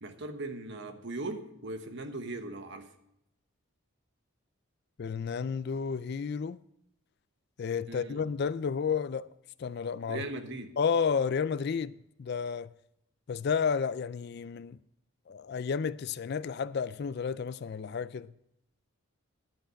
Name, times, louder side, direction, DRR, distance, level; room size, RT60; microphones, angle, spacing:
voice 1, 0.0-2.9 7.9-8.3 10.1-10.8, right 2 dB, 50° right, 1.1 m, -39 dB
voice 2, 5.0-6.6 7.6-9.3 9.6-10.2 10.8-12.7 13.3-14.8 15.3-18.3, left 6 dB, 45° left, 0.3 m, -31 dB
11.0 x 8.1 x 6.3 m
head